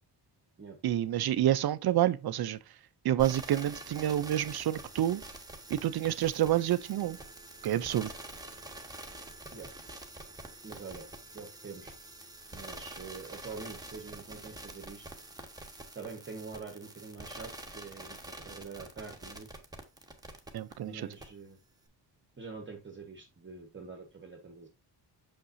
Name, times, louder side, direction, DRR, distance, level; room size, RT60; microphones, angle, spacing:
voice 1, 0.8-2.6 3.0-5.2 5.7-7.2 7.6-8.1 20.5-20.9, right 12 dB, 60° right, 0.5 m, -28 dB
sound 1, 3.2-20.7 21.1-21.2, right 2 dB, 10° right, 1.2 m, -46 dB
voice 2, 10.6-11.1 11.3-11.9 12.5-15.1 15.9-19.5 20.8-21.6 22.4-24.7, right 4 dB, 25° right, 1.1 m, -45 dB
6.6 x 5.5 x 2.6 m
wide cardioid pair, 130°, 42 cm